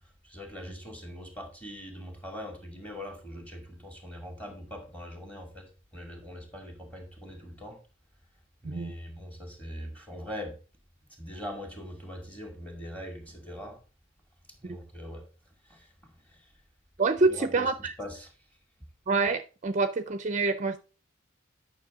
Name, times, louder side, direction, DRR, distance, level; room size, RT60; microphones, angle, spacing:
voice 1, 0.2-7.8 8.6-10.6 11.1-13.8 14.5-16.5 17.3-18.3, left 1 dB, 10° left, 2.3 m, -42 dB
voice 2, 17.0-17.9 19.1-20.8, right 3 dB, 35° right, 0.5 m, -26 dB
9.5 x 6.1 x 3.7 m
head